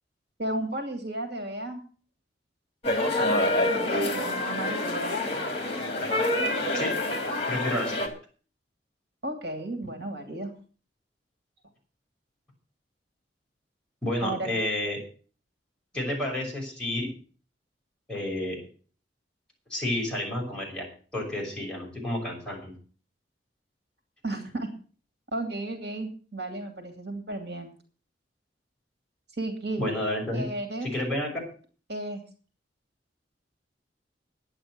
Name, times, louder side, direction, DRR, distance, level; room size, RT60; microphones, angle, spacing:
voice 1, 0.4-1.8 3.1-5.5 9.2-10.5 14.2-14.5 24.2-24.7 25.3-27.7 29.3-29.8 30.3-30.9 31.9-32.2, right 2 dB, 65° right, 5 dB, 2.7 m, -34 dB
sound 1, 2.8-8.1, left 1 dB, 35° left, 3.1 m, -27 dB
voice 2, 7.5-8.1 14.0-15.0 15.9-17.1 18.1-18.6 19.7-20.8 21.1-22.7 29.8-30.4 30.8-31.3, left 1 dB, 5° left, -2 dB, 6.0 m, -30 dB
11.0 x 9.2 x 7.6 m, 0.41 s
head